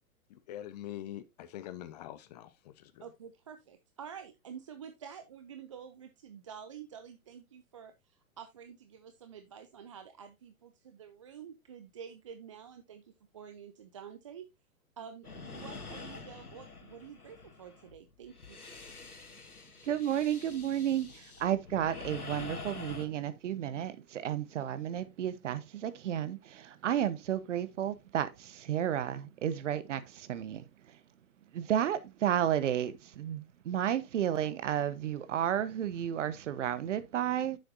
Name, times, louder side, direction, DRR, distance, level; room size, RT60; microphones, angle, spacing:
voice 1, 0.3-3.0, left 12 dB, 30° left, 0.6 m, -44 dB
voice 2, 3.0-14.5 15.0-18.6, right 7 dB, 25° right, 0.4 m, -49 dB
sound 1, 15.2-23.1, left 4 dB, 90° left, 1.7 m, -46 dB
voice 3, 19.9-30.6 31.5-37.6, right 10 dB, 55° right, 1.0 m, -32 dB
9.4 x 7.0 x 2.6 m
figure-of-eight pair, 115°, 43 cm